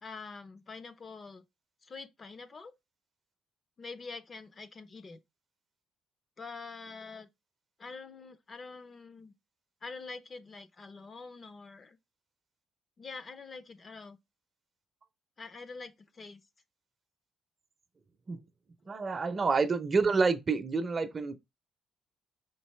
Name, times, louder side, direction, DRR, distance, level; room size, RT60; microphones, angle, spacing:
voice 1, 0.0-1.4 1.8-2.7 3.8-5.2 6.4-7.3 7.8-9.3 9.8-12.0 13.0-14.2 15.4-16.4, left 4 dB, 40° left, 0.6 m, -45 dB
voice 2, 18.9-21.4, right 4 dB, 40° right, 0.6 m, -28 dB
4.6 x 2.8 x 3.1 m
cardioid pair, 90°, 0 cm